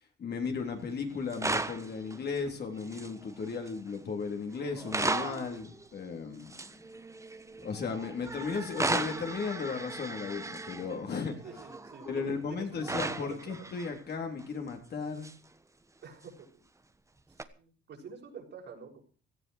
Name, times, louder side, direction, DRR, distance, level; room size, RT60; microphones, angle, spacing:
voice 1, 0.2-6.6 7.6-11.4 12.0-15.3, left 5 dB, 55° left, 3 dB, 3.7 m, -35 dB
sound 1, 0.7-0.9 1.1-3.9 4.5-12.5 12.8-14.0 14.4-14.7 15.2-15.3 17.4-17.5, right 2 dB, 15° right, 1.3 m, -37 dB
voice 2, 11.4-13.7 16.0-16.3 17.6-19.0, right 5 dB, 65° right, 0 dB, 6.1 m, -47 dB
17.5 x 13.5 x 4.8 m, 0.38 s
cardioid pair, 90°, 20 cm